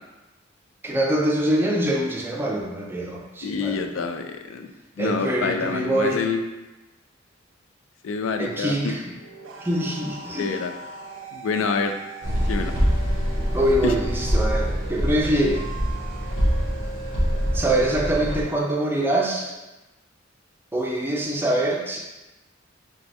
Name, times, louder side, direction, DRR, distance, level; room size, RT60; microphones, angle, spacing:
voice 1, 0.8-4.0 5.0-6.2 8.4-9.1 9.6-10.5 13.5-15.7 17.5-19.5 20.7-22.0, right 1 dB, 10° right, -1 dB, 0.4 m, -24 dB
voice 2, 3.4-4.7 5.0-6.4 8.0-8.9 10.4-10.7 11.3-11.9 12.5-12.7 13.8-13.9, left 5 dB, 80° left, 6 dB, 0.3 m, -27 dB
sound 1, 9.1-19.5, right 3 dB, 70° right, 0.4 m, -40 dB
sound 2, 12.2-18.4, equal, 60° left, 1.0 m, -25 dB
3.4 x 3.2 x 2.7 m, 1.0 s
head